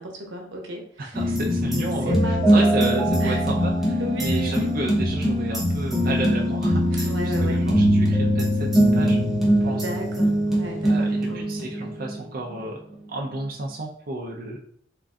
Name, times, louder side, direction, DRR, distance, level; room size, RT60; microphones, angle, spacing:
voice 1, 0.0-1.3 2.0-2.7 3.2-3.4 4.0-4.7 7.0-7.7 9.7-11.5, right 1 dB, 85° right, 2 dB, 0.9 m, -34 dB
voice 2, 1.0-9.2 9.5-9.9 10.8-12.8 13.1-14.6, right 2 dB, 50° right, -1 dB, 0.5 m, -32 dB
sound 1, 1.1-12.2 12.5-12.6, equal, ahead, 0.9 m, -22 dB
3.7 x 2.5 x 3.5 m, 0.64 s
head